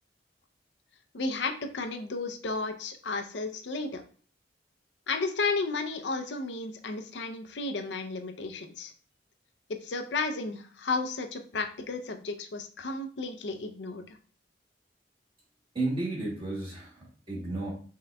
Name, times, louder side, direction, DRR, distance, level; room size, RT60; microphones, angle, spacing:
voice 1, 1.1-4.0 5.1-8.9 9.8-14.2, left 3 dB, 80° left, 7 dB, 0.6 m, -33 dB
voice 2, 15.7-17.7, right 2 dB, 30° right, -4 dB, 1.7 m, -33 dB
5.6 x 3.8 x 2.2 m, 0.41 s
head